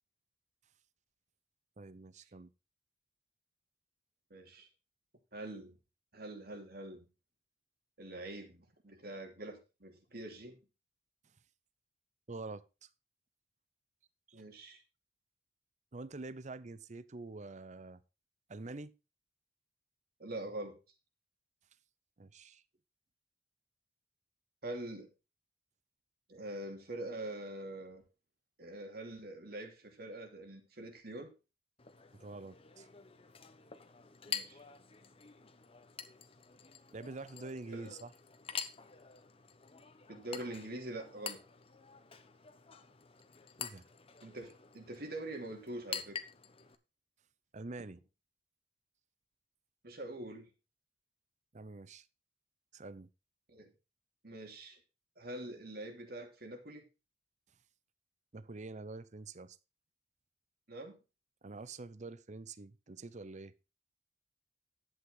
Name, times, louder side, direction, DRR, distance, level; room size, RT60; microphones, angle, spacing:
voice 1, 1.8-2.5 12.3-12.9 14.3-14.4 15.9-18.0 18.5-18.9 22.2-22.6 32.1-32.9 36.9-38.1 43.6-43.8 47.5-48.0 51.5-52.1 52.7-53.1 58.3-59.6 61.4-63.5, right 3 dB, 40° right, 0.7 m, -46 dB
voice 2, 4.3-4.7 5.3-5.7 6.1-7.1 8.0-10.6 14.3-14.8 20.2-20.8 24.6-25.1 26.3-28.0 28.6-31.3 34.3-34.6 37.7-37.9 40.1-41.4 44.2-46.2 49.8-50.5 53.5-53.7 54.2-54.8 55.2-56.8 60.7-61.0, right 1 dB, 60° right, 2.7 m, -44 dB
Chink clink, 31.8-46.8, left 7 dB, 30° left, 1.0 m, -47 dB
11.0 x 8.6 x 3.8 m
head